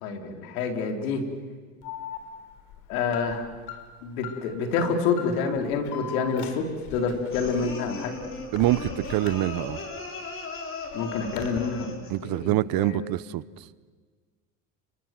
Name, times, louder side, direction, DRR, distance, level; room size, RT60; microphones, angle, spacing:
voice 1, 0.0-1.2 2.9-3.4 4.0-8.2 10.9-12.0 12.2-13.1, left 5 dB, 85° left, 4 dB, 4.1 m, -28 dB
Alarm, 1.8-10.0 10.4-11.6, left 8 dB, 70° left, 4.3 m, -41 dB
sound 1, 7.3-12.2, left 3 dB, 30° left, 5.3 m, -37 dB
voice 2, 8.5-9.8 12.1-13.4, right 16 dB, 55° right, 19 dB, 0.9 m, -25 dB
29.5 x 25.5 x 7.7 m, 1.5 s
supercardioid pair, 95°, 41 cm